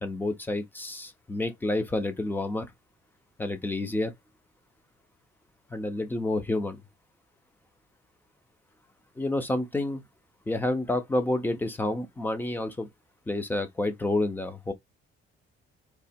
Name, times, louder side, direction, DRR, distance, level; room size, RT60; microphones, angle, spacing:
voice 1, 0.0-2.7 3.4-4.1 5.7-6.8 9.2-10.0 10.5-12.9 13.3-14.7, left 2 dB, 10° left, 0.7 m, -29 dB
3.3 x 2.9 x 4.2 m
cardioid pair, 165°, 21 cm